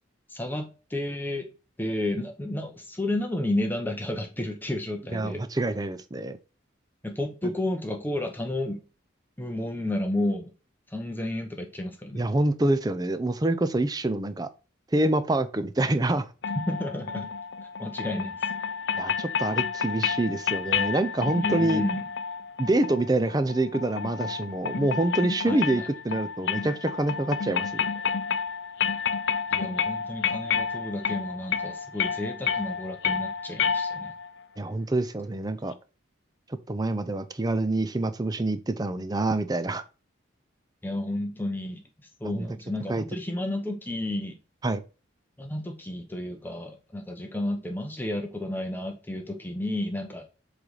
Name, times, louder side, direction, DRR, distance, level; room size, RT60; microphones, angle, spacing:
voice 1, 0.3-1.4 1.8-5.4 7.0-8.8 9.4-10.5 10.9-12.2 16.7-17.3 17.8-18.4 21.4-22.0 25.5-25.9 29.5-34.1 40.8-41.8 42.2-44.4 45.4-50.2, left 1 dB, 10° left, 0.7 m, -31 dB
voice 2, 5.1-6.4 12.1-14.5 14.9-16.3 19.0-21.8 22.6-27.9 34.6-35.7 36.7-39.8 42.2-42.5 42.9-43.0 44.6-44.8, right 2 dB, 20° right, 0.5 m, -26 dB
sound 1, 16.4-34.3, left 6 dB, 60° left, 0.5 m, -30 dB
7.6 x 3.3 x 3.9 m
head